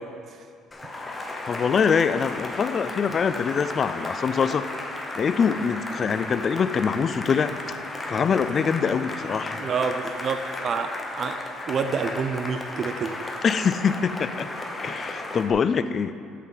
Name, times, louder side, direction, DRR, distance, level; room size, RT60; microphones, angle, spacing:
Cheering / Applause, 0.7-15.5, left 2 dB, 20° left, 1.0 m, -34 dB
voice 1, 1.5-4.7 5.2-7.5 8.1-9.7 13.4-14.5 14.8-16.1, left 6 dB, 45° left, 13 dB, 0.3 m, -24 dB
voice 2, 9.6-10.4 10.6-11.4 11.7-13.2, right 5 dB, 50° right, 7 dB, 0.5 m, -27 dB
8.2 x 6.4 x 3.9 m, 2.3 s
supercardioid pair, 90°, 0 cm